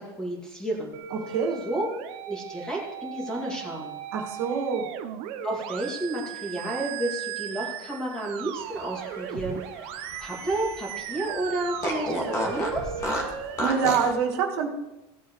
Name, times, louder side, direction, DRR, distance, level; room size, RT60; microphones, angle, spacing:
voice 1, 0.0-0.9 1.3-1.4 1.6-1.9 2.2-4.0 5.4-12.9, right 1 dB, 5° left, -2 dB, 2.3 m, -31 dB
sound 1, 0.9-13.9, right 10 dB, 50° right, 0.9 m, -37 dB
voice 2, 1.1-1.6 4.1-4.9 13.3-14.7, right 6 dB, 85° right, 1 dB, 2.0 m, -26 dB
Fart, 8.8-10.9 11.2-11.3 11.8-14.1, left 1 dB, 25° left, 2.0 m, -32 dB
16.5 x 8.1 x 3.2 m, 1.0 s
cardioid pair, 165°, 13 cm